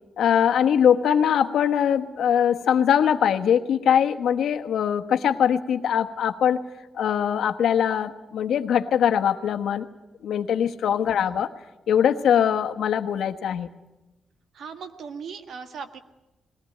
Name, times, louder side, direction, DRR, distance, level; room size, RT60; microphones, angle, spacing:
voice 1, 0.2-6.6 6.9-9.9 10.2-11.5 11.9-13.7, left 8 dB, 85° left, 7 dB, 1.2 m, -22 dB
voice 2, 14.5-16.0, right 6 dB, 70° right, 8 dB, 1.6 m, -38 dB
20.5 x 17.5 x 9.2 m, 1.0 s
wide cardioid pair, 135°, 0 cm